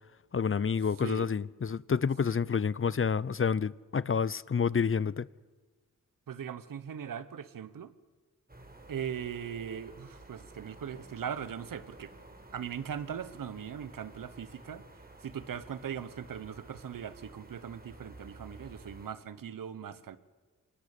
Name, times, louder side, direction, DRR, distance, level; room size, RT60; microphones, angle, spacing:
voice 1, 0.3-5.3, left 6 dB, 40° left, 0.7 m, -29 dB
voice 2, 6.3-7.9 8.9-12.1 12.5-14.8 15.2-20.2, right 8 dB, 80° right, 1.3 m, -39 dB
sound 1, 8.5-19.1, right 2 dB, 30° right, 4.4 m, -52 dB
25.0 x 19.5 x 8.5 m
cardioid pair, 45°, 33 cm